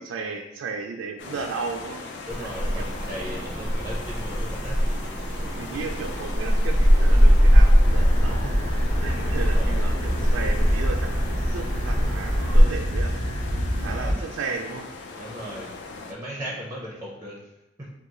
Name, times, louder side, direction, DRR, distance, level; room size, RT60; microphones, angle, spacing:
voice 1, 0.0-2.0 2.4-2.9 5.6-8.6 9.0-13.2 13.7-14.9, right 4 dB, 90° right, 3 dB, 0.3 m, -34 dB
sound 1, 1.2-16.1, left 3 dB, 65° left, 0.4 m, -40 dB
sound 2, 2.3-12.6, equal, 15° left, 1.2 m, -21 dB
voice 2, 2.3-4.8 9.1-9.8 13.8-14.2 15.2-15.7 16.1-17.4, equal, 15° right, -4 dB, 0.5 m, -37 dB
sound 3, 7.8-14.1, equal, 40° left, 0.7 m, -27 dB
2.9 x 2.3 x 3.6 m, 0.93 s
head